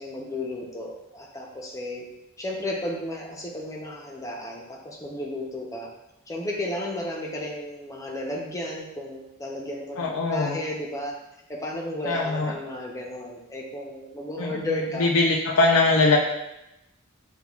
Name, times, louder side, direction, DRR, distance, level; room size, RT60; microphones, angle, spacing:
voice 1, 0.0-2.1 2.4-5.9 6.3-11.2 11.5-15.1, left 1 dB, 15° left, -2 dB, 0.6 m, -33 dB
voice 2, 10.0-10.6 12.0-12.5 14.4-16.2, left 3 dB, 75° left, -2 dB, 0.5 m, -22 dB
6.8 x 2.3 x 2.3 m, 0.91 s
head